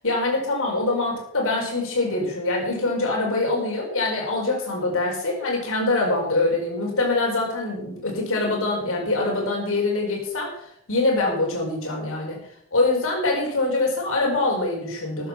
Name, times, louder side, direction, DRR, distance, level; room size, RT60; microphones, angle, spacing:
voice 1, 0.0-10.5 10.9-12.4 12.7-15.3, left 2 dB, 65° left, -2 dB, 4.6 m, -24 dB
13.5 x 9.3 x 6.0 m, 0.71 s
head